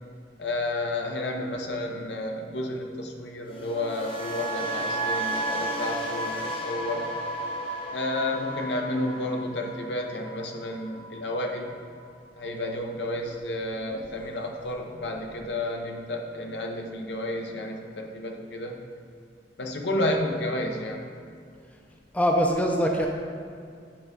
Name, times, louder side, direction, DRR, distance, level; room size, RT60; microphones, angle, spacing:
voice 1, 0.4-7.1 7.9-11.8 12.4-18.7 19.6-21.1, left 1 dB, 75° left, 2 dB, 0.8 m, -31 dB
sound 1, 3.5-11.6 11.8-12.2, right 1 dB, 30° left, 0.9 m, -33 dB
voice 2, 22.1-23.1, equal, 10° left, 1 dB, 0.5 m, -22 dB
8.6 x 3.5 x 5.2 m, 2.2 s
head